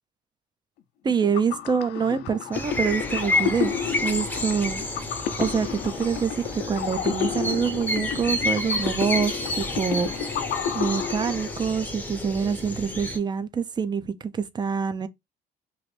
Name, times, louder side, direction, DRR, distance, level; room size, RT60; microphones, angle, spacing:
voice 1, 1.0-3.7 4.0-4.8 5.4-10.4 10.7-15.1, right 6 dB, 25° right, 0.4 m, -26 dB
sound 1, 1.1-11.9, left 8 dB, 75° left, 0.5 m, -32 dB
sound 2, 2.5-13.2, left 2 dB, 10° left, 0.7 m, -30 dB
3.1 x 2.5 x 3.1 m
cardioid pair, 110°, 17 cm